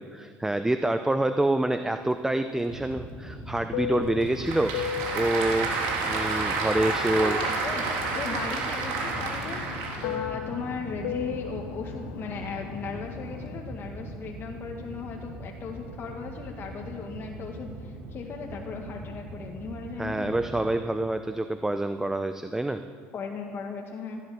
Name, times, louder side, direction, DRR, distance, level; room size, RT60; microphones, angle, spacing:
voice 1, 0.0-4.8 5.1-5.7 6.0-7.4 20.0-22.8, right 1 dB, 10° right, 9 dB, 0.7 m, -27 dB
Fixed-wing aircraft airplane, 2.1-7.5 7.8-13.7, left 11 dB, 80° left, 0.7 m, -38 dB
sound 1, 2.7-20.7, right 1 dB, 35° right, 3.5 m, -41 dB
Applause / Crowd, 4.0-10.2, right 4 dB, 75° right, 3.5 m, -30 dB
voice 2, 7.2-20.3 23.1-24.2, left 5 dB, 40° left, 0 dB, 1.8 m, -37 dB
15.5 x 11.0 x 7.6 m, 2.1 s
supercardioid pair, 85°, 6 cm